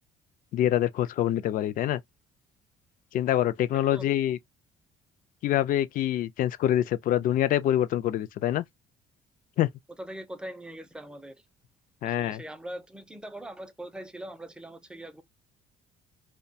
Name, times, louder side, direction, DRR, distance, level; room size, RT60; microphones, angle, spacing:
voice 1, 0.5-2.0 3.1-4.4 5.4-8.6 9.6-9.7 12.0-12.4, left 12 dB, 55° left, 0.4 m, -25 dB
voice 2, 10.0-11.4 12.0-15.2, right 1 dB, 5° right, 0.4 m, -41 dB
2.3 x 2.2 x 2.6 m
cardioid pair, 110°, 17 cm